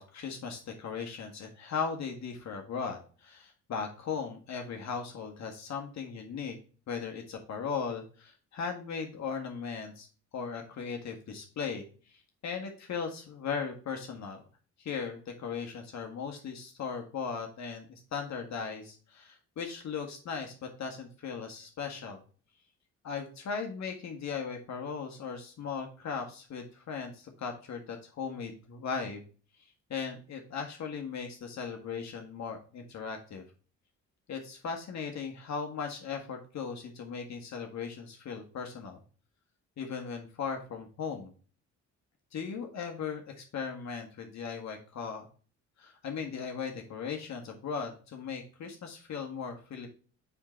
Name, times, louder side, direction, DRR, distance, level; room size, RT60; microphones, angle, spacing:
voice 1, 0.0-6.6 6.9-10.1 10.3-14.4 14.8-22.2 23.0-29.2 29.6-33.4 34.3-39.0 39.8-41.3 42.3-45.3 45.8-49.9, left 6 dB, 65° left, 3 dB, 1.7 m, -38 dB
8.8 x 3.8 x 4.4 m, 0.39 s
cardioid pair, 90°, 30 cm